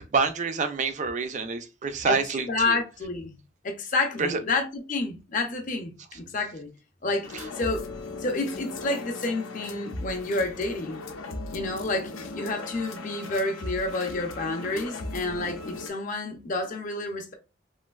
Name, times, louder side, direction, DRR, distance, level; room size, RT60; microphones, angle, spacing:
voice 1, 0.1-2.8 4.2-4.4, right 4 dB, 35° right, 0.4 m, -27 dB
voice 2, 2.5-3.4 3.6-6.7 7.0-7.3 7.6-7.9 8.2-11.0 11.5-17.3, left 2 dB, 40° left, 0.5 m, -29 dB
sound 1, 7.2-15.9, left 2 dB, 90° left, 0.5 m, -38 dB
3.1 x 2.5 x 2.3 m
head